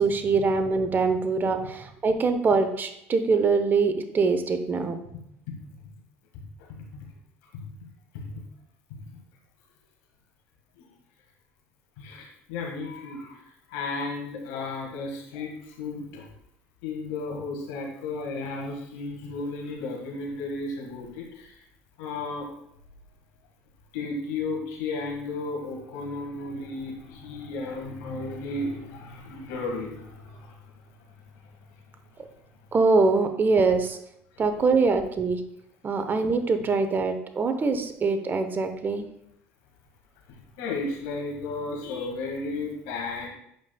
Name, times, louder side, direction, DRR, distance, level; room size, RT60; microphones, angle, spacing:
voice 1, 0.0-5.0 32.7-34.0 34.4-35.4 35.8-39.0, right 4 dB, 35° right, 8 dB, 0.8 m, -23 dB
voice 2, 6.3-6.7 7.5-7.7 8.1-8.3 8.9-9.0 10.8-10.9 12.0-16.3 16.8-21.6 22.0-22.5 23.9-30.6 34.3-34.5 40.3-43.3, left 3 dB, 75° left, 0 dB, 1.7 m, -34 dB
8.1 x 5.1 x 2.3 m, 0.74 s
hypercardioid pair, 75°, 6 cm